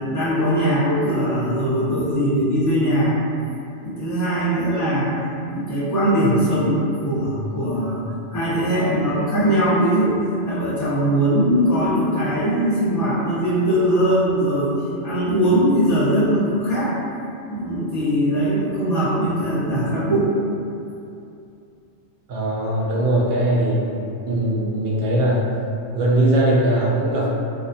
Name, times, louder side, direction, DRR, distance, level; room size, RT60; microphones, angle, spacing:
voice 1, 0.0-3.2 3.8-5.2 5.5-8.0 8.3-10.2 10.4-14.7 15.0-16.9 17.5-20.3, right 1 dB, 20° left, -11 dB, 0.7 m, -20 dB
voice 2, 22.3-25.5 25.9-27.3, right 1 dB, 60° right, -4 dB, 0.6 m, -20 dB
2.4 x 2.2 x 2.6 m, 2.6 s
omnidirectional pair, 1.2 m